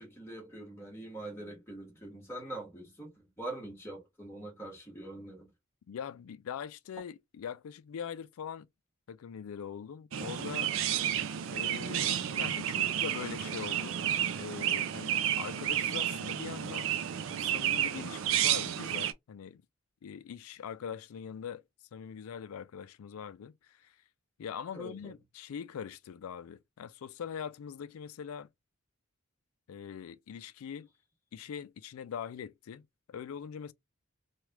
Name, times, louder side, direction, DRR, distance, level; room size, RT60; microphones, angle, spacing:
voice 1, 0.0-5.5 10.9-11.3 24.7-25.1, right 2 dB, 10° left, 1.5 m, -44 dB
voice 2, 5.9-8.7 9.1-10.7 11.5-16.9 17.3-19.6 20.0-21.6 21.9-24.0 24.4-28.5 29.7-30.9 31.3-32.8 33.1-33.7, left 7 dB, 80° left, 0.3 m, -42 dB
Chirp tweet, 10.1-19.1, right 10 dB, 65° right, 0.4 m, -31 dB
3.2 x 2.3 x 2.9 m
head